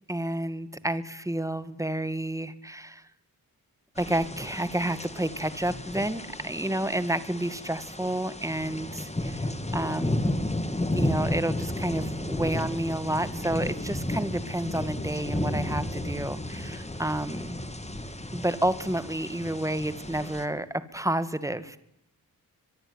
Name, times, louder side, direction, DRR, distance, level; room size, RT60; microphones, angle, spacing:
voice 1, 0.1-3.0 4.0-10.2 10.9-17.6 18.3-21.8, right 1 dB, 10° right, 13 dB, 2.1 m, -30 dB
sound 1, 4.0-20.5, left 1 dB, 15° left, 2.5 m, -33 dB
23.5 x 23.5 x 9.8 m, 0.77 s
wide cardioid pair, 115°, 37 cm